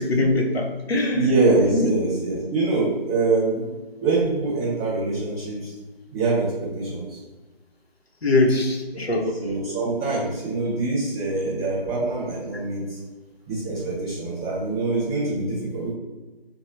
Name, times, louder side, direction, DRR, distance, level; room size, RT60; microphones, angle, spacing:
voice 1, 0.0-1.3 1.7-1.9 8.2-9.3, left 2 dB, 85° left, 2 dB, 0.7 m, -22 dB
voice 2, 1.1-3.6 4.0-5.7 6.1-7.2 8.9-13.0 13.5-15.9, right 3 dB, 5° left, -17 dB, 0.8 m, -24 dB
3.1 x 2.1 x 3.0 m, 1.1 s
figure-of-eight pair, 160°, 30 cm